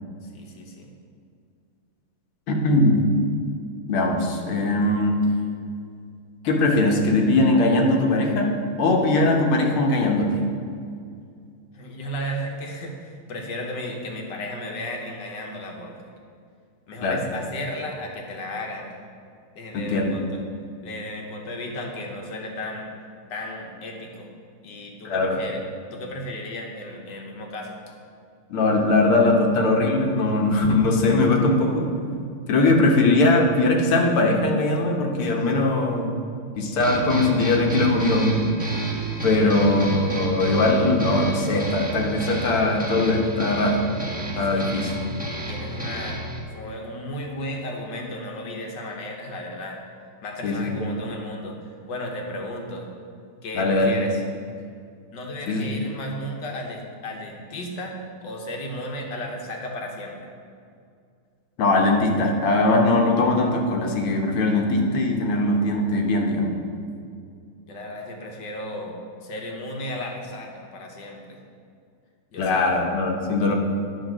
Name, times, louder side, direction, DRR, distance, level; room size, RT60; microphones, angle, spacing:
voice 1, 0.3-0.9 11.7-16.0 16.9-18.9 19.6-20.4 20.8-22.9 23.3-24.3 24.6-25.6 25.9-27.8 39.4-39.7 44.5-44.9 45.5-46.2 46.5-49.8 50.2-51.6 51.9-52.9 53.4-54.2 55.1-60.3 67.7-71.4 72.3-72.7, left 1 dB, 60° left, 1 dB, 1.7 m, -34 dB
voice 2, 2.5-3.0 3.9-5.2 6.4-8.5 8.8-10.4 17.0-17.2 19.7-20.1 25.0-25.4 28.5-31.9 32.5-36.1 36.6-38.5 39.2-43.8 44.4-44.9 50.4-50.7 53.6-53.9 55.5-55.6 61.6-66.5 72.4-73.6, left 2 dB, 80° left, 1 dB, 2.0 m, -20 dB
sound 1, 36.8-46.4, right 3 dB, 5° right, 0.9 m, -30 dB
10.5 x 5.1 x 6.1 m, 2.3 s
omnidirectional pair, 2.4 m